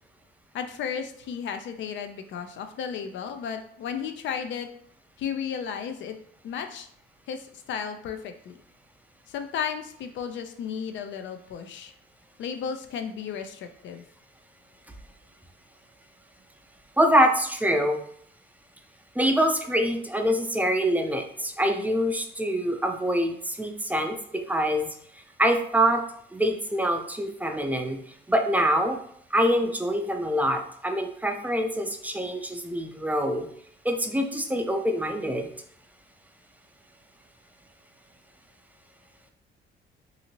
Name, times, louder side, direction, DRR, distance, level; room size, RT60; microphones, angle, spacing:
voice 1, 0.5-4.7 5.2-6.2 6.4-6.9 7.3-8.6 9.3-11.9 12.4-14.0, left 7 dB, 70° left, 7 dB, 0.4 m, -34 dB
voice 2, 17.0-18.0 19.2-24.9 25.1-26.0 26.3-29.0 29.3-33.5 33.8-35.5, equal, 10° right, 5 dB, 0.4 m, -25 dB
2.8 x 2.6 x 2.8 m, 0.66 s
cardioid pair, 90°, 20 cm